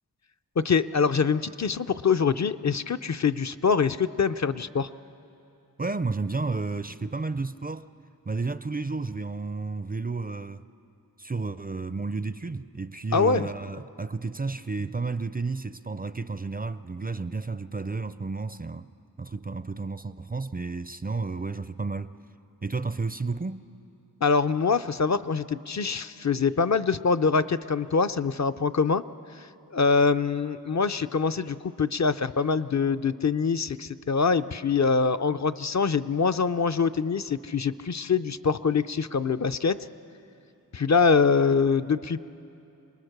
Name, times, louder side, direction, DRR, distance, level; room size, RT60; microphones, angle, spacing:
voice 1, 0.6-4.9 13.1-13.5 24.2-29.0 29.4-39.9 40.7-42.2, left 5 dB, 50° left, 0.5 m, -24 dB
voice 2, 5.8-7.9 8.3-10.6 11.2-18.9 19.2-22.1 22.6-23.7, right 3 dB, 25° right, 0.4 m, -32 dB
27.0 x 20.0 x 6.6 m
wide cardioid pair, 60°, 37 cm